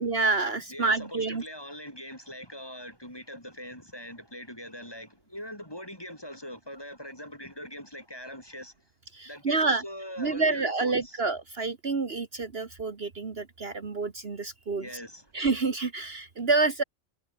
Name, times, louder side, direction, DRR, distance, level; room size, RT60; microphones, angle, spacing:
voice 1, 0.0-1.4 9.1-9.8 10.2-14.9 15.3-16.8, right 3 dB, 55° right, 1.9 m, -28 dB
voice 2, 0.7-8.7 9.2-11.2 14.8-15.3, equal, 20° left, 7.3 m, -42 dB
omnidirectional pair, 1.3 m